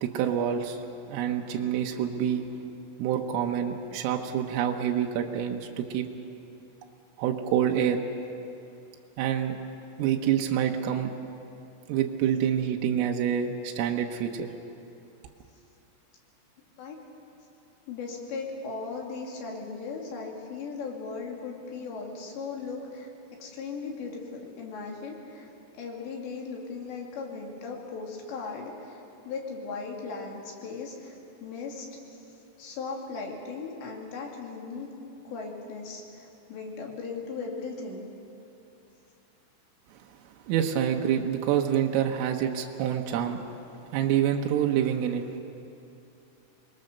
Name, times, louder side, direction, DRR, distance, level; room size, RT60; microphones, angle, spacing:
voice 1, 0.0-2.5 3.0-6.1 7.2-8.0 9.2-9.6 10.0-11.1 11.9-14.5 40.5-43.4 43.9-45.2, right 9 dB, 80° right, 2 dB, 3.6 m, -27 dB
voice 2, 17.9-23.1 23.4-31.1 31.4-32.2 32.6-34.9 35.2-38.1, left 4 dB, 60° left, -1 dB, 4.6 m, -37 dB
27.0 x 21.0 x 6.7 m, 2.8 s
omnidirectional pair, 5.8 m